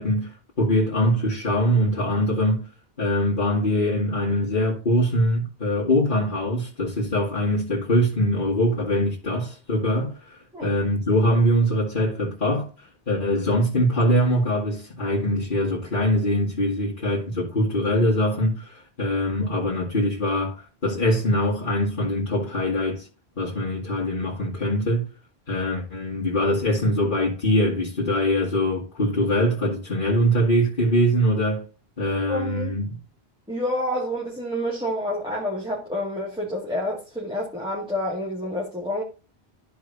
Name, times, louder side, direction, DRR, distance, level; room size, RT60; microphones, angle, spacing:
voice 1, 0.0-2.6 3.0-23.1 23.4-25.1 25.5-31.6 32.0-33.0, equal, 50° left, 2.4 m, -23 dB
voice 2, 32.3-32.7 33.5-39.0, left 1 dB, 5° right, 2.1 m, -28 dB
13.5 x 4.8 x 2.7 m
omnidirectional pair, 1.1 m